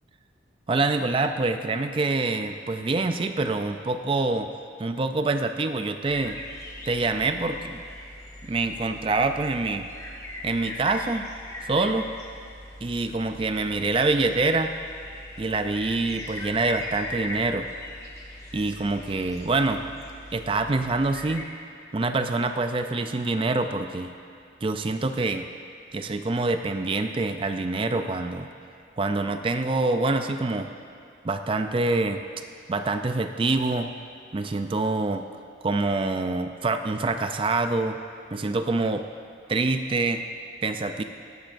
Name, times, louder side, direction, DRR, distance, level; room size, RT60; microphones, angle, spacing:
voice 1, 0.7-4.5 4.8-6.4 6.9-7.8 8.4-9.9 10.4-11.3 11.6-12.1 12.8-14.7 15.4-17.7 18.5-19.8 20.3-21.5 21.9-24.1 24.6-25.5 25.9-28.5 29.0-30.7 31.2-32.2 32.7-33.9 34.3-35.3 35.6-38.0 38.3-39.0 39.5-40.2 40.6-41.0, right 3 dB, 25° right, 8 dB, 0.4 m, -25 dB
sound 1, 6.1-21.4, left 1 dB, 15° left, 1.1 m, -40 dB
18.5 x 13.5 x 2.6 m, 2.4 s
head